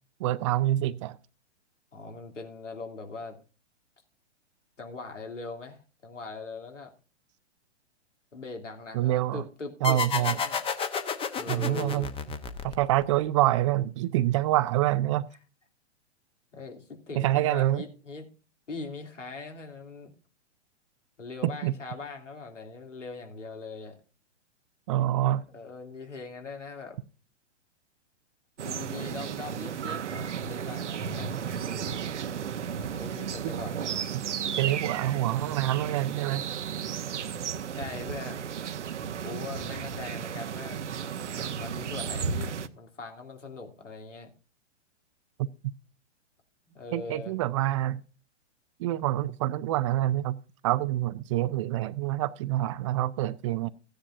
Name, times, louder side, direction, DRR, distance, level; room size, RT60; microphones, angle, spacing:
voice 1, 0.2-1.2 8.9-9.4 9.8-10.4 11.5-12.1 12.6-15.3 17.2-17.8 21.4-21.7 24.9-25.4 33.4-33.6 34.1-34.2 34.6-36.4 46.9-48.0 48.8-50.4 50.6-53.7, right 14 dB, 30° right, 0.4 m, -26 dB
voice 2, 1.9-3.4 4.8-6.9 8.3-10.6 11.4-12.2 16.5-18.3 18.7-20.1 21.2-24.0 25.5-27.0 28.6-31.5 32.9-33.8 37.7-38.5 39.2-40.8 41.5-44.3 46.7-47.4, left 3 dB, 90° left, 3.0 m, -41 dB
sound 1, 9.8-13.1, left 5 dB, 15° left, 0.9 m, -31 dB
sound 2, 28.6-42.7, right 7 dB, 75° right, 0.9 m, -34 dB
15.0 x 10.0 x 2.6 m
hypercardioid pair, 120°, 36 cm